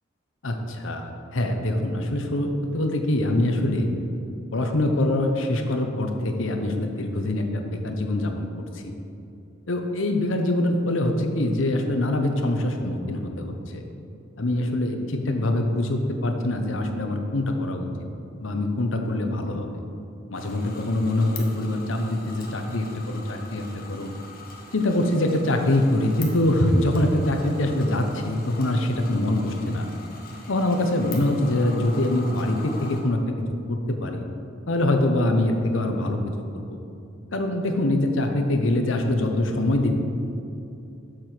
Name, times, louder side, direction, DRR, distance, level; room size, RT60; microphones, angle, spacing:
voice 1, 0.4-3.9 4.5-8.5 8.7-8.9 9.7-13.8 14.4-17.9 18.4-19.7 20.3-24.1 24.7-29.9 30.5-33.2 33.7-34.2 34.7-36.2 36.5-36.8 37.3-40.0, left 1 dB, 90° left, 4 dB, 1.0 m, -24 dB
sound 1, 20.3-33.0, left 4 dB, 50° left, 1.4 m, -43 dB
7.5 x 6.8 x 6.0 m, 2.7 s
head